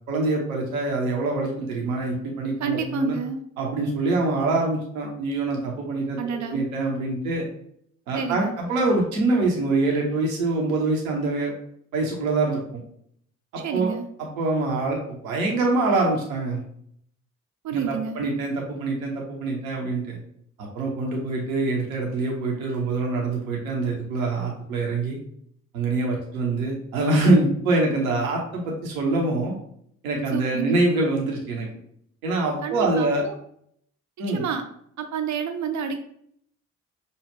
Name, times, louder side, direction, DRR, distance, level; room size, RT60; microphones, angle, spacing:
voice 1, 0.1-3.1 3.6-6.2 6.5-7.5 8.1-11.5 11.9-12.8 13.5-13.9 14.2-16.6 17.7-20.2 20.6-25.2 25.7-29.5 30.0-31.7 32.2-33.2 34.2-34.4, right 2 dB, 85° right, -1 dB, 0.8 m, -24 dB
voice 2, 2.6-3.4 6.2-6.6 8.1-8.5 13.6-14.1 17.6-18.2 30.3-30.8 32.6-33.3 34.3-34.7 35.0-36.0, right 6 dB, 45° right, 6 dB, 0.6 m, -29 dB
5.2 x 2.3 x 3.2 m, 0.67 s
figure-of-eight pair, 40°, 40 cm